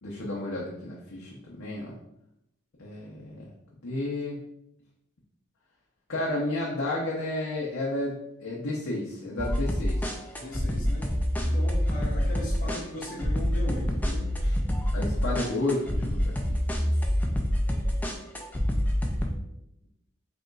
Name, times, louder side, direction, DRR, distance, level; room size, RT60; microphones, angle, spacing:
voice 1, 0.0-2.0 2.8-3.5 3.8-4.5 6.1-10.1 11.4-11.5 14.4-14.5 14.9-16.6, left 2 dB, 70° left, -4 dB, 0.6 m, -32 dB
sound 1, 9.4-19.3, equal, 10° left, 0.3 m, -27 dB
voice 2, 10.4-11.1 11.3-14.2 16.7-17.1, left 1 dB, 40° left, -7 dB, 1.2 m, -38 dB
4.9 x 2.9 x 2.3 m, 0.82 s
head